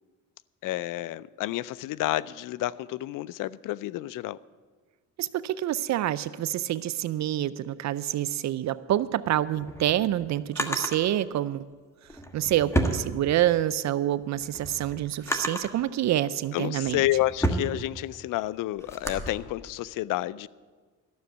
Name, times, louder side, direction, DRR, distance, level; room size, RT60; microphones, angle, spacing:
voice 1, 0.6-4.4 16.5-20.5, left 15 dB, 70° left, 0.5 m, -30 dB
voice 2, 5.2-11.6 12.3-17.0, right 12 dB, 55° right, 0.5 m, -27 dB
Drawer open or close, 9.4-11.0 12.0-13.7 14.1-15.8 16.5-19.3, equal, 10° left, 1.3 m, -31 dB
13.0 x 7.0 x 9.3 m
cardioid pair, 105°, 33 cm